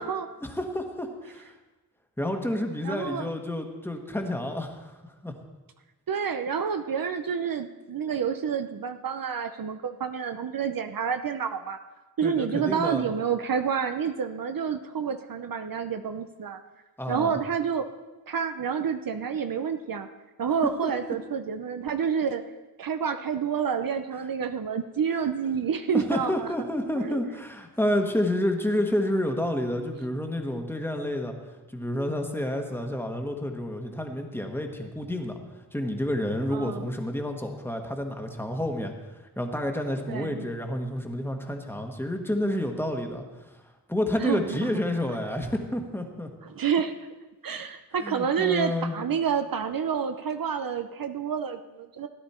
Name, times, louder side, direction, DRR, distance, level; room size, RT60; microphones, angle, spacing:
voice 1, 0.4-1.5 2.2-5.3 12.2-13.1 17.0-17.4 20.8-21.1 25.9-31.3 31.7-35.4 35.7-38.9 39.4-43.2 43.9-46.3 48.0-49.0, left 1 dB, 5° left, 3 dB, 1.4 m, -29 dB
voice 2, 2.8-3.3 6.1-11.8 12.2-16.6 17.1-17.9 18.3-20.1 20.4-22.4 22.8-26.5 27.0-27.2 36.5-36.9 40.1-40.5 44.2-44.7 46.4-47.0 47.4-52.1, right 7 dB, 60° right, 8 dB, 0.7 m, -29 dB
16.5 x 11.0 x 4.4 m, 1.2 s
wide cardioid pair, 115°, 39 cm